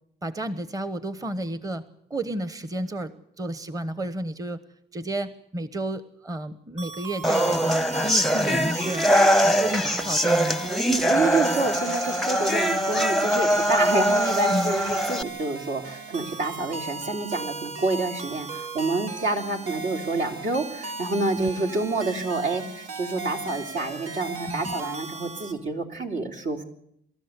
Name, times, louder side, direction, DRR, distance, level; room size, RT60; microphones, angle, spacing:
voice 1, 0.2-1.8 2.1-4.6 4.9-9.1 9.4-10.7 14.5-14.7 21.4-21.5 24.5-24.7, right 1 dB, 20° right, 13 dB, 1.0 m, -31 dB
sound 1, 6.8-25.5, right 4 dB, 90° right, 2.2 m, -37 dB
sound 2, 7.2-15.2, equal, ahead, 0.7 m, -22 dB
voice 2, 10.8-26.6, right 3 dB, 75° right, 2 dB, 3.5 m, -28 dB
26.5 x 13.5 x 8.3 m, 0.75 s
cardioid pair, 90°, 20 cm